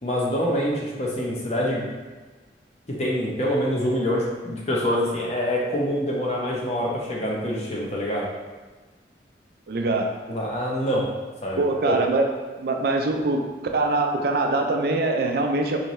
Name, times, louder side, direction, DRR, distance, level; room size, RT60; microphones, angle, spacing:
voice 1, 0.0-1.8 3.0-8.3 10.3-11.1 11.4-12.0, equal, 40° left, -3 dB, 0.7 m, -25 dB
voice 2, 9.7-10.1 11.6-12.3 12.6-13.5 13.7-15.8, right 2 dB, 60° right, 3 dB, 0.4 m, -23 dB
4.4 x 2.6 x 3.0 m, 1.3 s
head